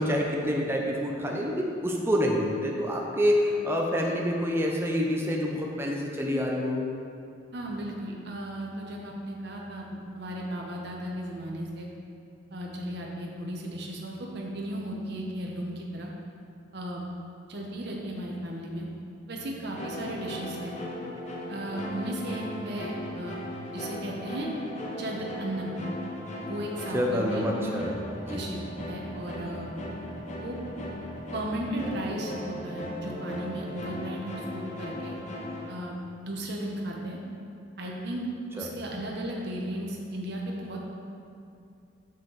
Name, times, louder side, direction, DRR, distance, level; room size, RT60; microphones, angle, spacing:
voice 1, 0.0-6.8 26.9-27.9 28.2-28.4 38.6-38.7, equal, 10° right, -1 dB, 0.6 m, -27 dB
voice 2, 7.5-11.9 12.5-16.1 16.7-17.1 17.5-18.9 19.3-20.7 21.5-23.4 23.7-24.5 25.0-25.7 26.5-27.6 28.3-28.6 28.9-29.7 30.4-30.6 31.3-35.2 35.7-35.9 36.2-37.2 37.8-38.3 38.5-40.9, right 1 dB, 55° right, -2 dB, 0.9 m, -35 dB
sound 1, 19.8-35.7, left 1 dB, 35° left, 0.9 m, -37 dB
6.6 x 6.3 x 4.0 m, 2.5 s
head